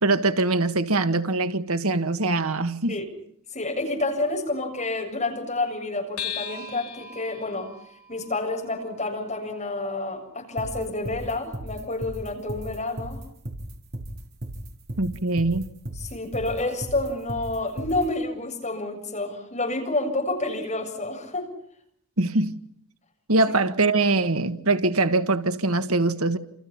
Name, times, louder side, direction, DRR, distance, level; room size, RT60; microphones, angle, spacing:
voice 1, 0.0-3.0 15.0-15.7 22.2-22.5 23.3-26.4, right 2 dB, 80° right, 1.7 m, -23 dB
voice 2, 3.5-7.7 8.1-13.2 16.0-21.5, left 2 dB, 30° left, 7.3 m, -29 dB
sound 1, 6.2-10.9, left 7 dB, 75° left, 4.0 m, -40 dB
sound 2, 10.6-18.1, right 1 dB, 45° right, 4.4 m, -35 dB
29.0 x 28.5 x 5.8 m
head